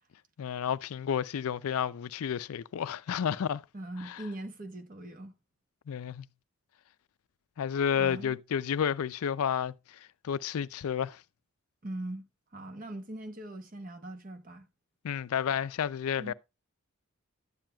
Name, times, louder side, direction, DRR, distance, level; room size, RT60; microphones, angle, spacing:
voice 1, 0.4-3.6 4.0-4.2 5.9-6.3 7.6-11.2 15.0-16.3, left 8 dB, 75° left, 0.4 m, -31 dB
voice 2, 3.7-5.3 7.9-8.4 11.8-12.2 12.5-14.7 16.2-16.3, right 1 dB, 35° right, 1.0 m, -41 dB
12.5 x 8.9 x 2.2 m
head